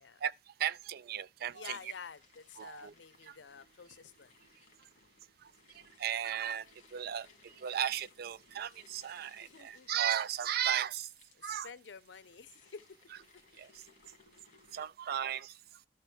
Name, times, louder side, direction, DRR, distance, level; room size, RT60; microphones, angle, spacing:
voice 1, 0.2-1.9 2.6-2.9 3.2-3.4 5.4-11.1 11.4-11.7 13.6-13.8 14.7-15.6, right 10 dB, 55° right, 0.4 m, -36 dB
voice 2, 1.5-4.3 9.4-9.9 11.4-13.0, left 6 dB, 75° left, 0.6 m, -50 dB
sound 1, 1.6-14.9, left 4 dB, 45° left, 2.1 m, -64 dB
12.5 x 4.3 x 3.5 m
head